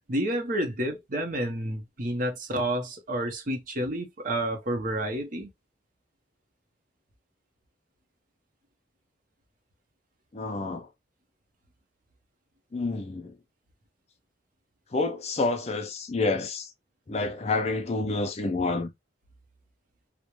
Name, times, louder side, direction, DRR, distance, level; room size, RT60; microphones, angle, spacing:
voice 1, 0.1-5.5, right 1 dB, 45° right, 0.7 m, -30 dB
voice 2, 10.3-10.9 12.7-13.3 14.9-16.7 17.1-18.9, left 3 dB, 35° left, 0.4 m, -28 dB
2.3 x 2.1 x 2.9 m
head